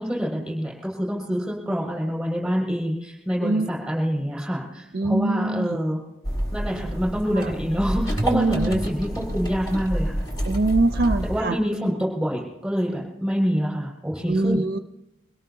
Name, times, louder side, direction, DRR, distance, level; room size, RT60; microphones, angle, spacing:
voice 1, 0.0-6.0 6.5-10.1 11.3-14.6, equal, ahead, -3 dB, 6.2 m, -26 dB
voice 2, 4.9-5.8 7.4-7.5 8.3-8.8 10.5-11.6 14.3-14.8, right 2 dB, 50° right, 8 dB, 0.5 m, -23 dB
sound 1, 6.2-11.4, equal, 20° left, 1.7 m, -28 dB
24.0 x 17.5 x 2.9 m, 0.91 s
head